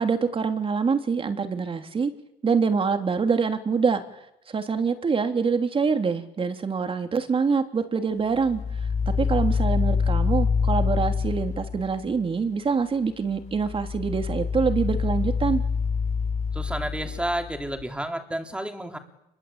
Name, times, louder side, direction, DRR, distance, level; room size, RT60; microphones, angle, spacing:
voice 1, 0.0-2.1 2.4-4.0 4.5-15.6, right 5 dB, 30° right, 7 dB, 3.2 m, -25 dB
sound 1, 8.4-12.1 13.4-17.8, left 5 dB, 45° left, 7.4 m, -26 dB
voice 2, 16.5-19.0, right 1 dB, 5° right, 5 dB, 3.8 m, -31 dB
28.5 x 22.5 x 8.9 m, 0.86 s
cardioid pair, 110°, 17 cm